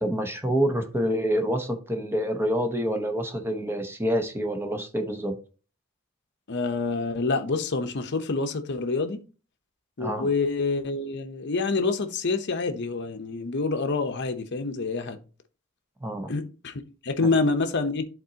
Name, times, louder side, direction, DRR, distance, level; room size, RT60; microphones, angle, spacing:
voice 1, 0.0-5.4 10.0-10.3 16.0-16.3, equal, 10° right, 0.9 m, -27 dB
voice 2, 6.5-9.2 10.0-15.2 16.3-16.7 17.0-18.1, left 3 dB, 50° left, 0.8 m, -27 dB
10.5 x 4.1 x 2.8 m
head